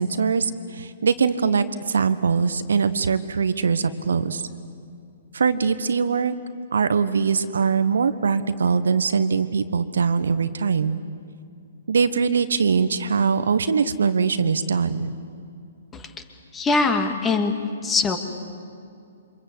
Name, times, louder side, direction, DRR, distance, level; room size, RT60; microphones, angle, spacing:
voice 1, 0.0-4.4 5.3-6.3 6.7-11.0 11.9-15.1, right 5 dB, 65° right, 12 dB, 1.2 m, -22 dB
voice 2, 16.5-17.5 17.8-18.2, left 4 dB, 15° left, 6 dB, 2.4 m, -22 dB
28.5 x 25.0 x 8.1 m, 2.4 s
figure-of-eight pair, 120°, 0 cm